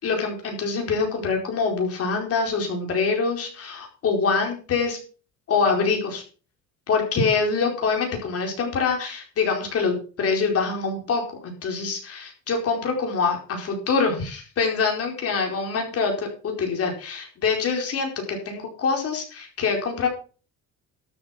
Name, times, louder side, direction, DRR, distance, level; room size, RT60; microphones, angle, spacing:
voice 1, 0.0-5.0 5.5-6.2 6.9-20.1, left 4 dB, 50° left, 2 dB, 4.7 m, -25 dB
12.5 x 7.7 x 6.0 m, 0.38 s
cardioid pair, 145°, 31 cm